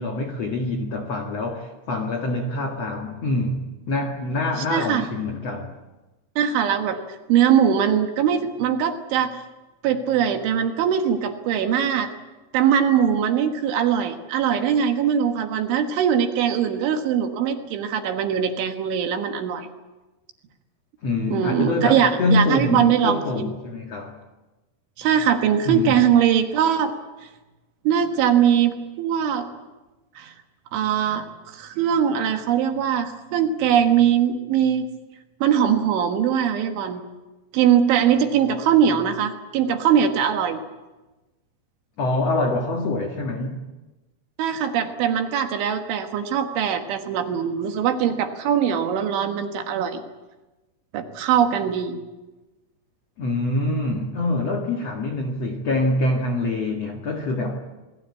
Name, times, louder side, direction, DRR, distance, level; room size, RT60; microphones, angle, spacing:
voice 1, 0.0-5.7 21.0-24.2 25.6-26.0 42.0-43.6 53.2-57.6, left 2 dB, 55° left, 4 dB, 1.8 m, -25 dB
voice 2, 4.7-5.1 6.4-9.4 9.8-12.1 12.5-19.7 21.3-23.5 25.0-26.9 27.9-29.5 30.2-30.3 30.7-34.9 35.4-37.0 37.5-40.6 44.4-50.0 50.9-52.0, right 8 dB, 70° right, 6 dB, 3.8 m, -21 dB
27.5 x 20.5 x 8.5 m, 1.1 s
omnidirectional pair, 5.8 m